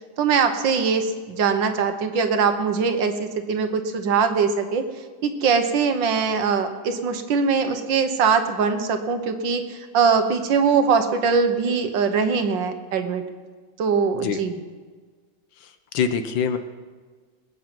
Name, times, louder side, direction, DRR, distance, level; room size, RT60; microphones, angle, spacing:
voice 1, 0.2-4.8 5.2-13.2 13.8-14.5, right 5 dB, 70° right, 8 dB, 1.7 m, -22 dB
voice 2, 15.6-16.6, left 7 dB, 70° left, 9 dB, 1.6 m, -25 dB
20.5 x 8.3 x 6.0 m, 1.4 s
omnidirectional pair, 2.2 m